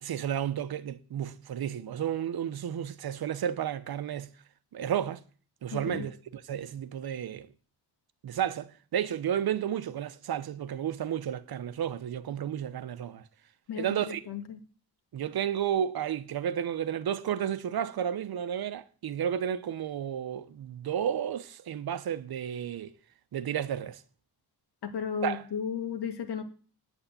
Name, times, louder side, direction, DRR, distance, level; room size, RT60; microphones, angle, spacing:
voice 1, 0.0-4.3 4.7-5.2 5.6-7.5 8.2-13.2 13.8-14.2 15.1-22.9 23.3-24.0 25.2-25.4, right 9 dB, 65° right, 0.9 m, -32 dB
voice 2, 5.7-6.1 13.7-14.6 24.8-26.4, left 7 dB, 80° left, 2.0 m, -34 dB
9.2 x 8.5 x 8.5 m
wide cardioid pair, 145°, 39 cm